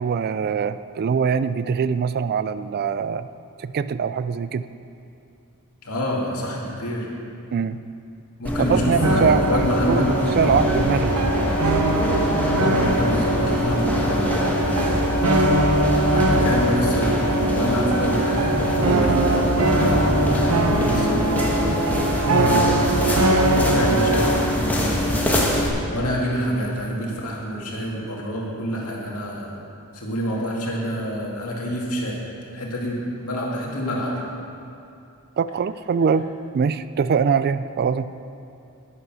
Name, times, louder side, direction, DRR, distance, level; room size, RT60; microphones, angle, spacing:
voice 1, 0.0-3.3 3.6-4.7 7.5-7.8 8.7-9.4 9.9-11.3 22.2-22.5 35.4-36.3 36.5-38.1, right 6 dB, 45° right, 14 dB, 0.3 m, -23 dB
voice 2, 5.8-7.1 8.4-10.6 12.6-15.2 15.8-21.8 22.4-23.2 23.6-25.4 25.9-29.5 29.9-32.2 32.5-34.2, equal, 75° left, -3 dB, 2.3 m, -27 dB
sound 1, 8.4-25.7, left 1 dB, 5° left, 1.4 m, -24 dB
sound 2, 9.0-24.4, right 2 dB, 85° right, 1.0 m, -22 dB
9.9 x 9.8 x 6.2 m, 2.6 s
head